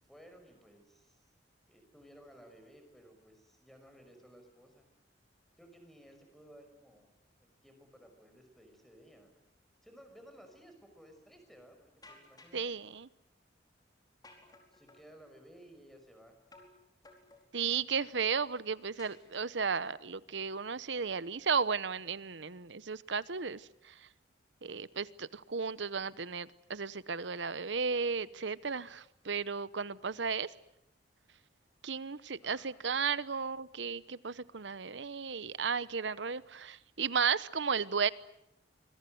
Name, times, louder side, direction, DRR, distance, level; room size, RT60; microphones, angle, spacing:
voice 1, 0.1-1.2 1.7-4.8 5.6-7.1 7.4-9.4 9.8-12.8 14.7-16.4 32.4-32.8, equal, ahead, 5.8 m, -57 dB
sound 1, 12.0-12.7 14.2-15.1 16.5-16.8 17.0-17.7 19.0-19.7, left 2 dB, 20° left, 4.7 m, -57 dB
voice 2, 12.5-13.1 17.5-23.6 24.6-30.5 31.8-38.1, right 5 dB, 75° right, 1.0 m, -34 dB
25.5 x 23.0 x 8.0 m
head